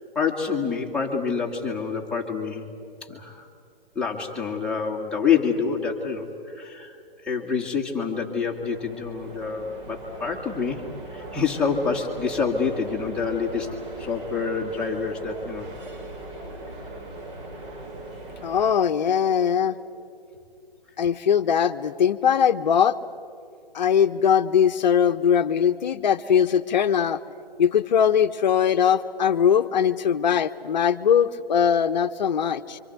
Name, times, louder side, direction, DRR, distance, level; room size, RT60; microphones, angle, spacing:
voice 1, 0.2-2.7 3.1-3.5 4.0-7.0 7.2-10.8 11.1-13.7 14.0-15.7, left 5 dB, 5° left, -3 dB, 2.1 m, -27 dB
sound 1, 7.8-18.7, right 2 dB, 30° right, 4.0 m, -39 dB
voice 2, 18.4-19.7 21.0-23.0 23.7-27.2 27.6-32.8, left 8 dB, 50° left, 10 dB, 1.1 m, -21 dB
27.5 x 25.5 x 8.1 m, 2.5 s
figure-of-eight pair, 140°, 29 cm